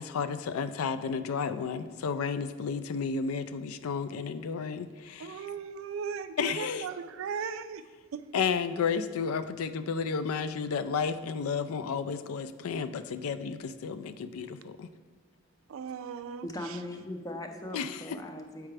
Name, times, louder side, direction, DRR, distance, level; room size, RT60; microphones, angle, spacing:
voice 1, 0.0-5.4 6.4-6.9 8.3-14.9 17.7-18.2, left 6 dB, 85° left, 0.4 m, -32 dB
voice 2, 5.2-7.9 8.1-8.2 15.7-16.8, right 6 dB, 70° right, 0.3 m, -37 dB
voice 3, 16.4-18.7, left 1 dB, 15° left, 0.4 m, -39 dB
7.5 x 4.7 x 3.3 m
head